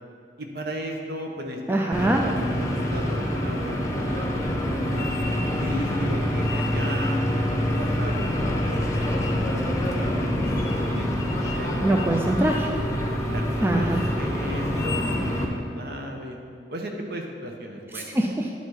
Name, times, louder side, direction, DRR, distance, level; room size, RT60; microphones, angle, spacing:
voice 1, 0.4-1.6 2.0-5.1 5.6-7.2 7.5-9.2 9.5-10.3 10.7-12.1 12.4-12.6 13.3-16.4 16.7-18.1, equal, 60° right, 2 dB, 0.9 m, -36 dB
voice 2, 1.7-2.2 11.8-12.7 13.6-14.0 17.9-18.5, right 1 dB, 10° right, 1 dB, 0.3 m, -23 dB
sound 1, 1.9-15.5, equal, 15° left, 0.8 m, -26 dB
sound 2, 4.9-5.8 6.4-7.2 7.7-8.5 8.9-9.4 9.9-10.0 10.4-10.9 11.2-11.7 12.0-12.2 12.5-12.8 13.2-13.6 13.9-14.1 14.6-15.2, left 3 dB, 55° left, 0.6 m, -39 dB
10.5 x 4.1 x 4.8 m, 2.4 s
head